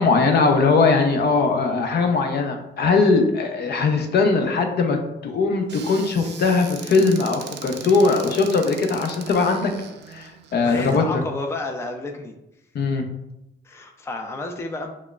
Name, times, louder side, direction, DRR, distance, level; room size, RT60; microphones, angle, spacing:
voice 1, 0.0-5.0 5.2-9.7 10.1-11.2 12.7-13.1, left 4 dB, 55° left, 4 dB, 0.6 m, -20 dB
Squeak / Cupboard open or close, 5.7-11.0, right 7 dB, 60° right, 0.5 m, -39 dB
voice 2, 10.6-12.3 13.6-14.9, left 2 dB, 15° left, 3 dB, 0.4 m, -31 dB
5.9 x 2.1 x 2.3 m, 0.86 s
cardioid pair, 90°, 20 cm